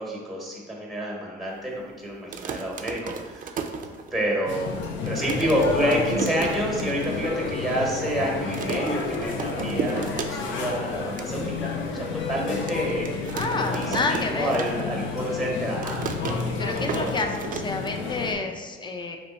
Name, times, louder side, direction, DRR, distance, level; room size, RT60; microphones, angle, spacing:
voice 1, 0.0-3.6 4.1-13.1 13.7-16.0, right 1 dB, ahead, -2 dB, 1.1 m, -28 dB
sound 1, 2.2-4.4 4.8-4.9 5.1-7.1 7.5-7.6 7.8-8.1 8.5-10.7 11.0-11.3 11.8-11.9 12.7-15.1 15.4-18.3, right 5 dB, 45° right, 0.4 m, -35 dB
sound 2, 4.4-18.3, left 4 dB, 70° left, 0.6 m, -30 dB
voice 2, 13.3-14.6 16.6-19.2, left 3 dB, 25° left, 4 dB, 0.5 m, -29 dB
3.3 x 3.0 x 4.1 m, 1.5 s
cardioid pair, 90°, 20 cm